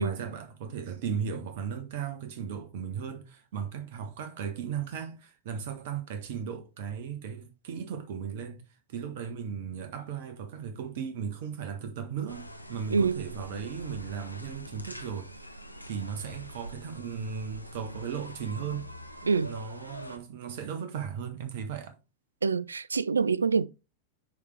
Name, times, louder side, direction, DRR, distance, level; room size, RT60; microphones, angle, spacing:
voice 1, 0.0-15.3 15.9-18.9 19.4-22.0, right 7 dB, 50° right, 1.2 m, -36 dB
sound 1, 12.3-20.2, equal, 90° left, 0.6 m, -44 dB
voice 2, 12.9-13.2 19.3-19.5 22.4-23.7, right 5 dB, 75° right, 0.3 m, -25 dB
10.0 x 3.5 x 3.3 m
figure-of-eight pair, 90°, 0 cm